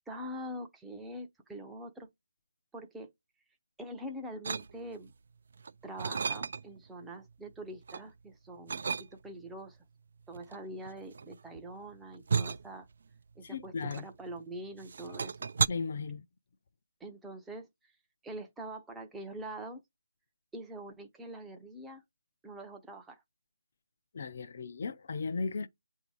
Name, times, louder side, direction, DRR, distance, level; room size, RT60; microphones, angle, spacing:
voice 1, 0.1-2.1 2.7-3.1 3.8-5.1 5.8-9.8 10.3-12.9 13.4-15.4 17.0-17.9 18.2-19.8 20.5-22.0 22.4-23.2, right 1 dB, 5° right, 0.6 m, -44 dB
sound 1, 4.4-5.1 5.6-6.9 7.3-8.1 8.7-9.5 10.3-14.5 14.8-15.7, right 5 dB, 45° right, 0.3 m, -34 dB
voice 2, 13.4-14.1 15.7-16.2 24.1-25.7, left 4 dB, 40° left, 0.5 m, -36 dB
8.0 x 2.8 x 4.7 m
figure-of-eight pair, 165°, 0 cm